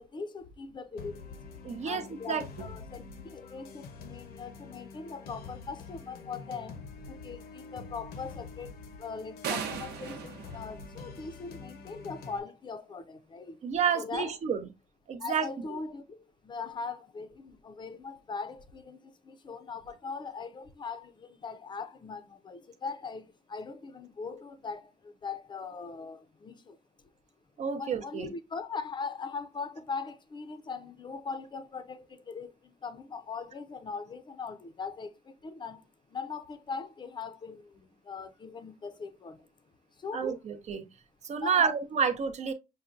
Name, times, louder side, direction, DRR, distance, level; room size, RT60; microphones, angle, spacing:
voice 1, 0.0-1.4 1.8-6.8 7.1-13.6 13.9-14.3 15.2-26.8 27.7-39.5 39.9-40.3 41.3-41.7, left 5 dB, 25° left, 0.6 m, -40 dB
sound 1, 1.0-12.4, left 4 dB, 65° left, 0.8 m, -46 dB
voice 2, 1.6-2.7 13.6-14.6 15.1-15.8 27.6-28.3 40.1-40.9 41.2-42.5, right 6 dB, 40° right, 0.7 m, -30 dB
sound 2, 9.4-11.6, right 7 dB, 75° right, 0.9 m, -37 dB
5.6 x 2.2 x 2.5 m
cardioid pair, 110°, 17 cm